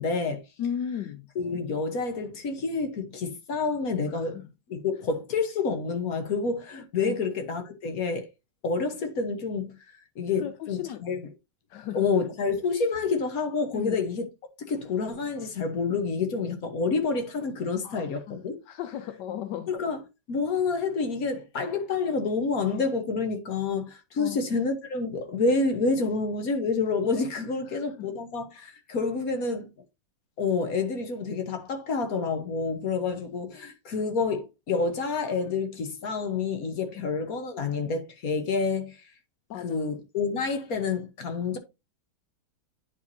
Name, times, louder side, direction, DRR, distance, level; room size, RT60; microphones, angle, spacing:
voice 1, 0.0-0.4 1.3-4.4 4.7-8.3 8.6-9.8 10.2-11.3 11.9-14.3 14.7-18.6 19.7-20.0 20.3-29.7 30.4-39.0 39.6-41.6, left 4 dB, 60° left, 1.4 m, -28 dB
voice 2, 0.6-1.2 4.1-4.5 7.0-7.2 10.4-11.1 11.7-12.1 13.7-14.0 17.8-19.7 24.2-24.4 27.7-28.1 36.9-37.0 39.5-39.8, left 9 dB, 75° left, 1.3 m, -36 dB
9.9 x 4.6 x 2.7 m
omnidirectional pair, 1.9 m